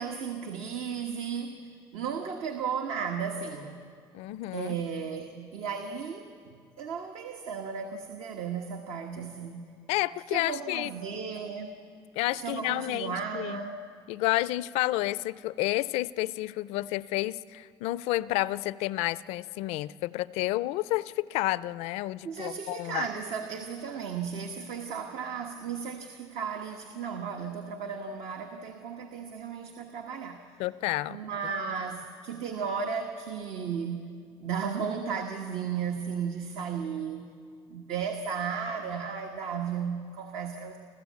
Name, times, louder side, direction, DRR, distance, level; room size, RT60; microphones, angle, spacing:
voice 1, 0.0-3.8 4.5-9.7 10.3-11.8 12.4-13.8 22.2-30.5 31.1-34.1 34.4-37.3 37.7-40.8, right 6 dB, 75° right, 4 dB, 1.3 m, -35 dB
voice 2, 4.1-4.8 9.9-10.9 12.2-13.6 14.1-23.1 30.6-31.2, left 17 dB, 85° left, 19 dB, 0.5 m, -30 dB
26.5 x 14.5 x 8.5 m, 2.3 s
cardioid pair, 115°, 11 cm